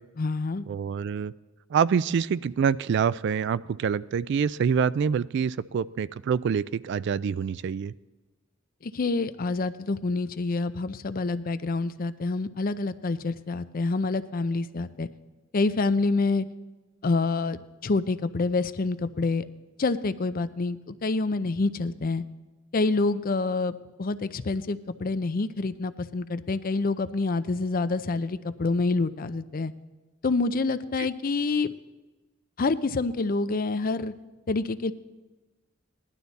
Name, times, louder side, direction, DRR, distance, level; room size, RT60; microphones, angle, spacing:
voice 1, 0.2-0.7 8.8-15.1 15.5-16.5 17.0-17.6 17.8-19.5 19.8-22.2 22.7-29.7 30.2-31.7 32.6-34.1 34.5-34.9, left 3 dB, 45° left, 13 dB, 0.5 m, -27 dB
voice 2, 0.7-1.3 1.7-7.9 31.0-31.1, right 7 dB, 60° right, 19 dB, 0.3 m, -26 dB
17.0 x 11.5 x 4.0 m, 1.2 s
head